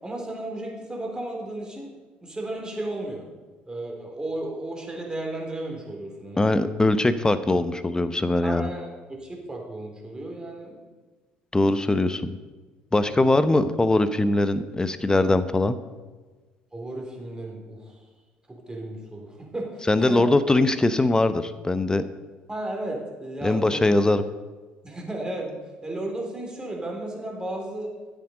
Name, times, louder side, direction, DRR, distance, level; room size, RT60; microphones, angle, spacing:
voice 1, 0.0-1.9 2.2-3.3 3.7-6.5 8.4-10.8 13.0-13.2 16.7-18.0 18.5-20.3 22.5-23.8 24.8-25.6 25.8-27.9, right 1 dB, 15° right, 0 dB, 3.6 m, -34 dB
voice 2, 6.4-8.7 11.5-12.4 12.9-15.8 19.9-22.0 23.4-24.2, left 2 dB, 15° left, 13 dB, 0.9 m, -21 dB
13.0 x 8.8 x 5.3 m, 1.3 s
figure-of-eight pair, 55°, 5 cm